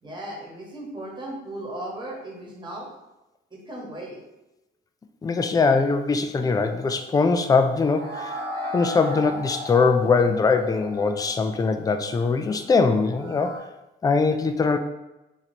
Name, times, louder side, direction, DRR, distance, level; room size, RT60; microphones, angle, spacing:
voice 1, 0.0-2.9 3.5-4.2, right 1 dB, 20° right, -3 dB, 1.3 m, -36 dB
voice 2, 5.2-8.4 8.7-13.6 14.0-14.8, left 4 dB, 20° left, 7 dB, 0.4 m, -22 dB
sound 1, 6.5-13.6, left 1 dB, 55° right, 1.2 m, -37 dB
3.0 x 2.7 x 4.2 m, 0.96 s
cardioid pair, 90°, 20 cm